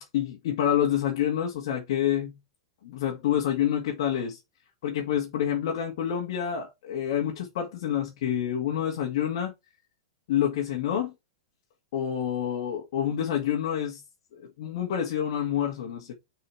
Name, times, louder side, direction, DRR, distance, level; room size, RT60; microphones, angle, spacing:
voice 1, 0.0-2.4 2.8-4.4 4.8-9.5 10.3-11.1 11.9-14.0 14.3-16.1, left 10 dB, 60° left, 2.0 m, -28 dB
6.9 x 4.7 x 4.7 m
hypercardioid pair, 115°, 3 cm